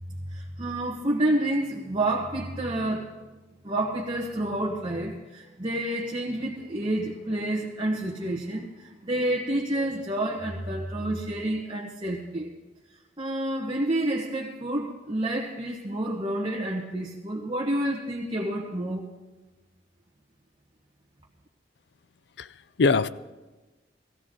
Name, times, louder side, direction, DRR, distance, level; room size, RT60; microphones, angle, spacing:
voice 1, 0.3-3.1 3.6-12.5 13.2-19.1, right 1 dB, 25° right, 1.2 m, -29 dB
voice 2, 22.4-23.1, left 4 dB, 70° left, 0.4 m, -23 dB
18.0 x 15.5 x 3.7 m
head